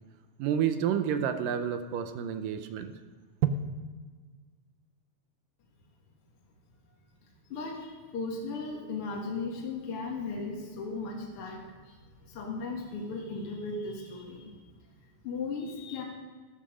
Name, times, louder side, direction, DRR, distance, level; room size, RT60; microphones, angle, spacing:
voice 1, 0.4-2.9, right 8 dB, 75° right, 9 dB, 2.3 m, -30 dB
voice 2, 7.5-12.0 12.2-14.6 15.2-16.0, left 3 dB, 50° left, -1 dB, 2.0 m, -36 dB
13.0 x 13.0 x 5.0 m, 1.5 s
omnidirectional pair, 4.3 m